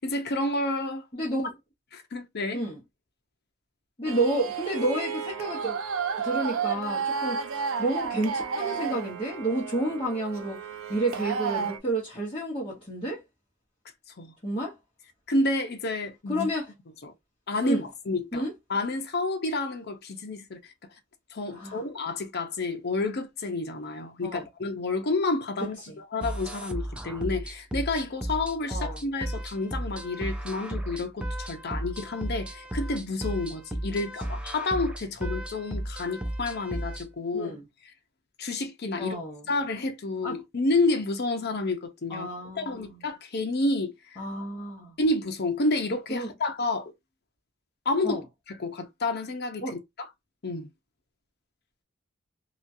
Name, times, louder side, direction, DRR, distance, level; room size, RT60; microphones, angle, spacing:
voice 1, 0.0-1.0 1.9-2.6 14.2-14.3 15.3-16.5 17.0-17.1 17.5-17.8 18.1-18.4 18.7-20.7 21.3-37.5 38.4-39.2 39.5-42.3 42.6-44.2 45.0-46.9 47.9-48.2 48.6-49.7 50.4-50.7, left 2 dB, 55° left, 0.7 m, -29 dB
voice 2, 1.1-1.5 2.5-2.8 4.0-5.8 6.2-10.6 10.9-13.2 14.4-14.8 16.3-16.7 17.6-17.9 18.3-18.5 21.5-21.8 24.2-24.5 25.6-26.0 28.7-29.0 37.3-37.6 39.0-39.4 40.2-40.4 42.1-43.0 44.2-45.0 46.1-46.3 48.0-48.2 49.6-49.8, right 1 dB, 25° left, 1.0 m, -30 dB
sound 1, 4.0-11.8, right 6 dB, 80° right, 0.5 m, -32 dB
sound 2, 26.2-37.1, right 1 dB, 5° right, 0.4 m, -34 dB
3.0 x 2.3 x 2.6 m
head